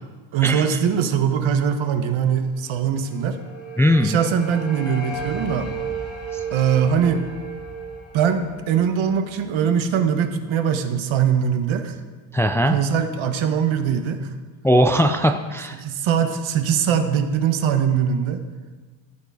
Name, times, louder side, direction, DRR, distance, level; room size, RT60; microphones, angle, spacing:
voice 1, 0.3-3.4 4.0-5.7 6.5-7.2 8.1-12.0 12.7-14.3 15.8-18.4, right 7 dB, 70° right, 7 dB, 1.3 m, -21 dB
sound 1, 2.9-9.9, right 4 dB, 60° left, 3.8 m, -34 dB
voice 2, 3.8-4.2 12.3-12.8 14.6-15.8, equal, 5° left, 5 dB, 0.4 m, -19 dB
14.0 x 7.1 x 4.8 m, 1.3 s
cardioid pair, 115°, 50 cm